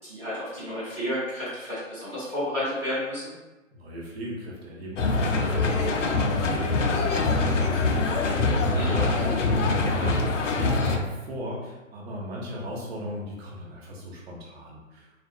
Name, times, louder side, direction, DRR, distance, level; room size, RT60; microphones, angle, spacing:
voice 1, 0.0-3.3 8.7-9.1, equal, 5° right, -12 dB, 0.6 m, -31 dB
voice 2, 3.7-15.1, equal, 50° right, -3 dB, 0.9 m, -36 dB
sound 1, 5.0-11.0, left 3 dB, 65° left, 0.5 m, -24 dB
3.7 x 2.4 x 2.3 m, 1.1 s
figure-of-eight pair, 135°, 40 cm